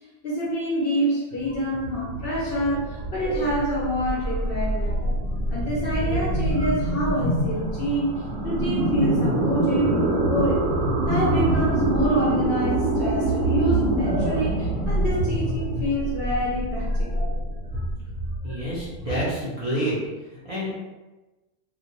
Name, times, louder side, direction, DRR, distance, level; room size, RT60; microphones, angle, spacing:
voice 1, 0.2-5.2 5.5-8.1 8.4-10.7 11.1-17.3, equal, 55° left, -5 dB, 0.7 m, -27 dB
sound 1, 1.3-19.1, right 1 dB, 75° right, 1.0 m, -25 dB
voice 2, 18.4-20.0 20.3-20.7, equal, 35° right, -9 dB, 0.6 m, -28 dB
2.4 x 2.1 x 3.0 m, 1.1 s
omnidirectional pair, 1.3 m